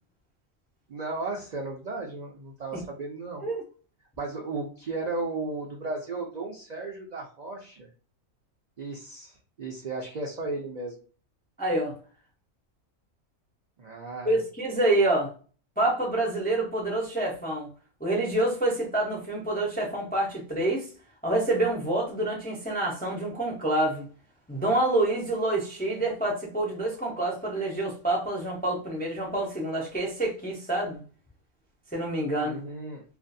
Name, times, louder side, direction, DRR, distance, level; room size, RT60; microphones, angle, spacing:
voice 1, 0.9-3.5 4.2-7.9 8.8-10.9 13.8-14.4 32.4-33.0, right 3 dB, 65° right, -1 dB, 0.4 m, -35 dB
voice 2, 11.6-11.9 14.3-15.3 15.8-17.7 18.0-20.9 21.2-24.0 24.5-31.0 31.9-32.6, right 2 dB, 10° left, -2 dB, 0.4 m, -27 dB
2.5 x 2.3 x 2.6 m, 0.38 s
omnidirectional pair, 1.4 m